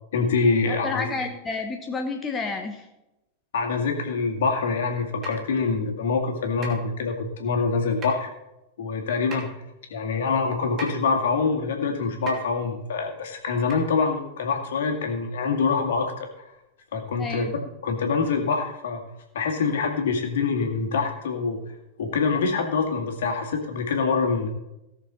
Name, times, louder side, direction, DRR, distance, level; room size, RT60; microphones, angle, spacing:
voice 1, 0.1-1.1 3.5-8.3 8.8-9.5 9.9-16.5 16.9-17.5 17.8-19.0 19.3-21.6 22.0-24.5, left 4 dB, 60° left, 3 dB, 2.1 m, -25 dB
voice 2, 0.6-2.9 17.2-17.5, left 4 dB, 20° left, 4 dB, 1.1 m, -30 dB
sound 1, 5.2-5.5 6.6-6.8 8.0-8.3 9.3-9.4 10.8-11.0 12.3-12.5 13.7-13.8 14.4-14.5, right 3 dB, 30° right, 2.6 m, -36 dB
17.5 x 6.7 x 4.1 m, 0.92 s
figure-of-eight pair, 90°, 0 cm